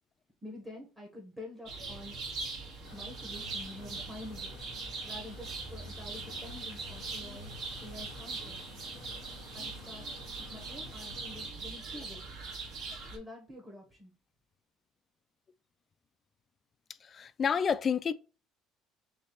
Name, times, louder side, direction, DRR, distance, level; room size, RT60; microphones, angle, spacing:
voice 1, 0.4-2.3 2.9-4.5 5.0-8.6 9.5-10.1 10.5-12.3 12.7-12.8 13.1-14.1, left 1 dB, 15° right, 1.1 m, -47 dB
sound 1, 1.7-13.2, right 3 dB, 55° right, 1.3 m, -41 dB
sound 2, 2.8-11.5, left 8 dB, 80° left, 0.6 m, -53 dB
voice 2, 17.1-18.1, left 6 dB, 30° left, 0.3 m, -29 dB
3.3 x 3.2 x 4.3 m
cardioid pair, 140°, 0 cm